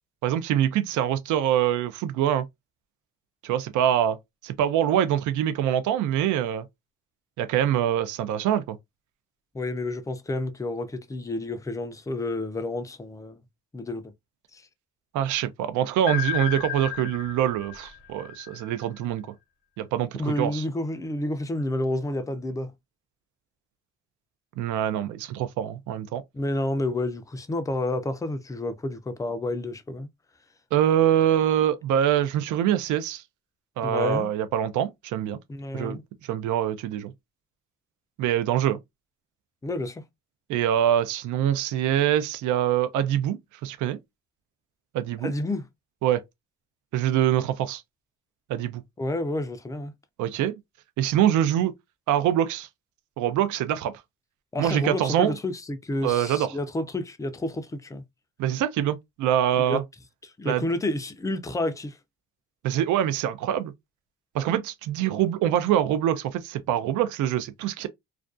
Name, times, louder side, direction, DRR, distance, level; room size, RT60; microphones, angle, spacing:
voice 1, 0.2-2.5 3.4-4.2 4.4-6.7 7.4-8.8 15.1-19.3 19.8-20.6 24.6-26.2 30.7-33.2 33.8-35.4 35.7-37.1 38.2-38.8 40.5-44.0 44.9-45.3 46.0-46.2 46.9-47.8 48.5-48.8 50.2-50.6 51.0-51.7 52.1-52.7 53.2-53.9 54.6-55.3 56.0-56.6 58.4-59.8 60.5-60.6 62.6-63.7 64.3-67.9, right 10 dB, 80° right, 0.4 m, -24 dB
voice 2, 9.5-13.4 13.7-14.1 14.5-14.7 20.1-22.7 26.3-30.1 33.8-34.3 35.5-36.0 39.6-40.0 45.2-45.6 49.0-49.9 54.5-58.0 59.7-59.8 60.2-62.0, left 2 dB, 10° left, 0.4 m, -30 dB
sound 1, 16.1-19.0, left 9 dB, 50° left, 0.7 m, -33 dB
2.4 x 2.2 x 2.4 m
cardioid pair, 90°, 30 cm